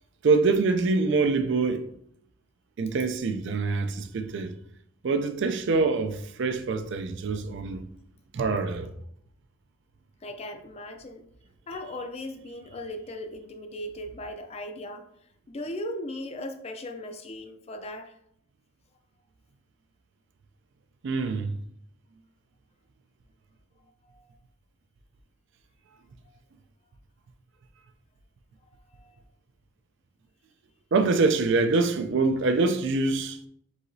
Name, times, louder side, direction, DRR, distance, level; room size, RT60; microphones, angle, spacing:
voice 1, 0.2-1.9 2.8-4.6 5.0-7.9 8.3-8.9 21.0-21.6 30.9-33.4, right 3 dB, 60° right, 0.4 m, -25 dB
voice 2, 10.2-11.2 11.7-15.1 15.5-18.1 24.0-24.3 28.9-29.2, left 1 dB, 30° left, 0.4 m, -38 dB
4.7 x 3.8 x 2.6 m
head